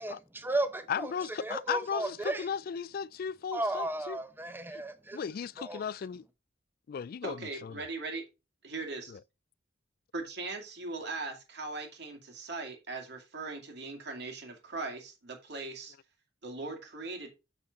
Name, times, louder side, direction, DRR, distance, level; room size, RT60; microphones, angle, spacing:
voice 1, 0.0-1.1 1.4-2.5 3.5-5.2 5.6-5.8, right 2 dB, 10° right, 0.8 m, -34 dB
voice 2, 0.9-4.2 4.7-4.8 5.1-6.3 6.9-7.9 9.1-9.2, left 7 dB, 50° left, 0.3 m, -36 dB
voice 3, 7.2-8.2 8.6-9.2 10.1-15.9 16.4-17.3, right 3 dB, 60° right, 2.3 m, -39 dB
7.4 x 6.2 x 4.0 m
head